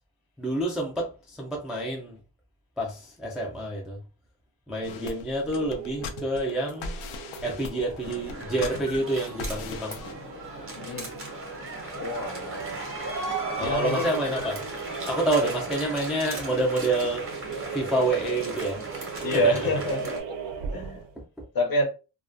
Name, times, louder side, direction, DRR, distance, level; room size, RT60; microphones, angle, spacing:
voice 1, 0.4-2.2 2.8-4.0 4.7-6.9 7.4-10.0 13.6-14.6 15.1-17.3 17.7-18.8 19.2-19.5 21.4-21.5, right 2 dB, ahead, 0.3 m, -28 dB
dead funk, 4.8-10.1, left 3 dB, 85° left, 0.6 m, -39 dB
voice 2, 4.8-5.3 10.8-11.1 12.0-12.8 13.6-14.4 19.2-20.4 20.7-21.0 21.5-21.9, equal, 45° left, 0.7 m, -28 dB
sound 1, 5.5-21.2, right 6 dB, 65° right, 0.5 m, -39 dB
sound 2, 8.0-20.2, right 2 dB, 25° right, 0.7 m, -36 dB
2.2 x 2.2 x 2.5 m
wide cardioid pair, 155°, 48 cm